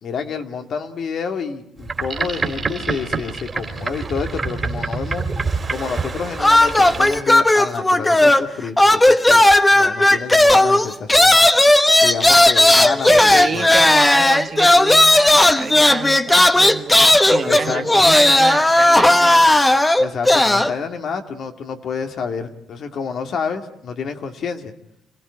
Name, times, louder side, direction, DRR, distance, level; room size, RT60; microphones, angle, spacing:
voice 1, 0.0-5.3 5.7-9.4 9.7-11.4 12.0-13.7 17.4-18.1 20.0-24.7, left 5 dB, 65° left, 5 dB, 2.2 m, -28 dB
Boat Water vehicle, 1.8-7.2, right 4 dB, 30° right, 2.6 m, -26 dB
sound 1, 6.4-8.5 8.8-20.7, left 1 dB, 15° left, 1.2 m, -14 dB
voice 2, 13.1-19.5, right 6 dB, 50° right, 8 dB, 1.4 m, -28 dB
27.0 x 16.5 x 9.8 m, 0.82 s
cardioid pair, 90°, 0 cm